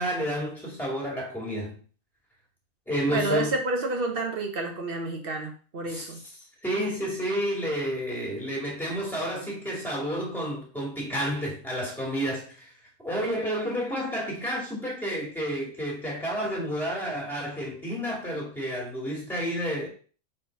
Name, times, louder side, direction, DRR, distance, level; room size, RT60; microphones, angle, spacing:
voice 1, 0.0-1.8 2.9-3.5 5.9-6.1 6.6-12.7 13.0-19.9, equal, ahead, 2.4 m, -30 dB
voice 2, 3.1-6.2, right 2 dB, 45° right, 1.3 m, -29 dB
4.4 x 4.2 x 5.2 m
omnidirectional pair, 1.3 m